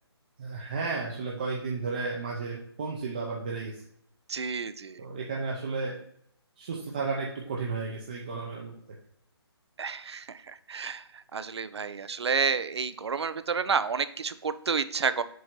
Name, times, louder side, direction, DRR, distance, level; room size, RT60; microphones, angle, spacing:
voice 1, 0.4-3.8 5.0-6.0 6.6-8.7, right 4 dB, 20° right, -2 dB, 0.5 m, -33 dB
voice 2, 4.3-5.0 9.8-15.2, right 5 dB, 75° right, 13 dB, 0.5 m, -30 dB
7.5 x 2.7 x 5.9 m, 0.70 s
hypercardioid pair, 170°, 14 cm